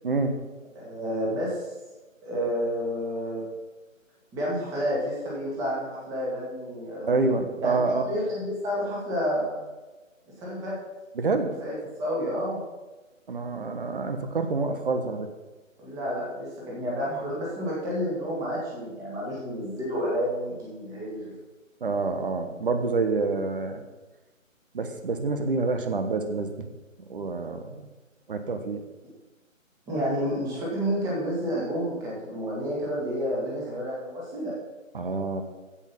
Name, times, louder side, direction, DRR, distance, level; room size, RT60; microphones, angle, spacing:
voice 1, 0.0-0.4 7.1-8.0 11.1-11.6 13.3-15.3 21.8-23.8 24.7-26.7 27.1-27.9 28.3-28.8 34.9-35.4, right 3 dB, 40° right, 7 dB, 1.3 m, -27 dB
voice 2, 0.8-1.7 2.2-3.4 4.3-7.3 7.6-9.6 10.4-10.7 11.6-11.7 12.0-12.6 15.8-21.3 29.9-34.5, equal, 10° right, -5 dB, 2.0 m, -30 dB
15.5 x 5.6 x 5.5 m, 1.2 s
figure-of-eight pair, 150°, 40 cm